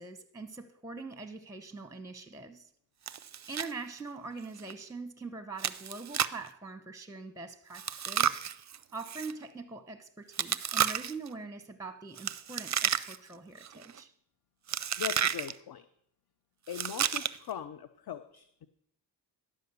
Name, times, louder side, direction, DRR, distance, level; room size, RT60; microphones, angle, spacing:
voice 1, 0.0-2.7 3.5-8.4 8.9-14.1, right 4 dB, 5° right, 0.7 m, -43 dB
Chewing mastication, 3.1-3.7 4.0-4.1 4.6-4.7 5.6-6.5 7.7-9.3 10.3-11.3 12.2-13.3 13.6-14.0 14.7-15.5 16.7-17.5, right 9 dB, 40° right, 0.4 m, -32 dB
voice 2, 15.0-15.9 16.7-18.7, left 9 dB, 55° left, 0.6 m, -40 dB
11.0 x 5.0 x 6.8 m
cardioid pair, 55°, 45 cm